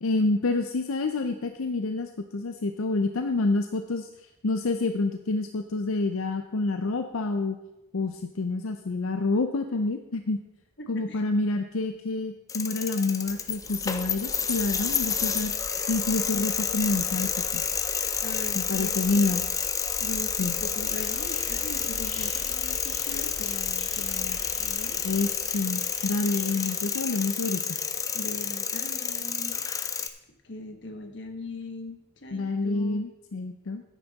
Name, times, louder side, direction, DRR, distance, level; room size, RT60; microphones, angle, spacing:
voice 1, 0.0-4.1 4.4-7.6 7.9-10.4 10.9-15.5 15.9-17.6 18.5-19.4 20.4-20.5 25.0-27.8 32.3-33.8, left 3 dB, 75° left, 7 dB, 0.6 m, -28 dB
voice 2, 10.8-11.2 18.2-19.4 20.0-25.1 28.1-29.6 30.4-33.1, left 2 dB, 55° left, 6 dB, 1.1 m, -40 dB
sound 1, 12.5-30.1, left 6 dB, 15° left, 0.4 m, -29 dB
sound 2, 13.3-24.7, right 1 dB, 50° right, 1.0 m, -47 dB
sound 3, 20.8-27.9, left 2 dB, 40° left, 1.9 m, -47 dB
9.5 x 9.1 x 4.0 m, 0.92 s
head